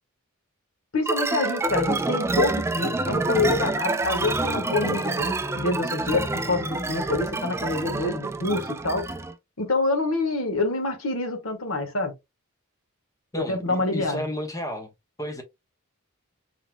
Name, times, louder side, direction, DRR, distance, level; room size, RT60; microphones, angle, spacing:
voice 1, 0.9-9.1 9.6-12.1 13.4-14.3, left 2 dB, 75° left, 1.4 m, -26 dB
sound 1, 1.0-9.3, right 2 dB, 10° right, 0.3 m, -27 dB
voice 2, 13.3-14.9 15.2-15.4, equal, 15° left, 1.1 m, -32 dB
4.4 x 3.8 x 2.2 m
head